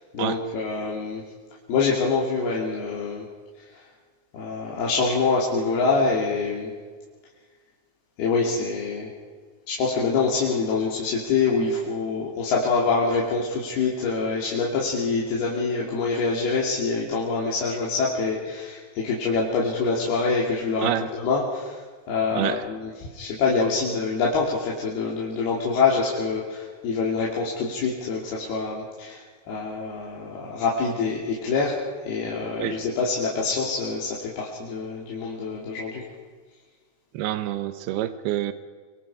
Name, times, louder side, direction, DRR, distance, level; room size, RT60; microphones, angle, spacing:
voice 1, 0.1-1.2 1.7-3.3 4.3-6.7 8.2-9.1 9.7-20.9 21.2-21.8 22.1-29.2 29.5-31.8 32.0-36.0, left 4 dB, 85° left, -4 dB, 4.8 m, -25 dB
voice 2, 22.3-22.7 32.6-32.8 37.1-38.5, right 13 dB, 85° right, 11 dB, 2.9 m, -27 dB
25.0 x 25.0 x 4.9 m, 1.5 s
omnidirectional pair, 4.4 m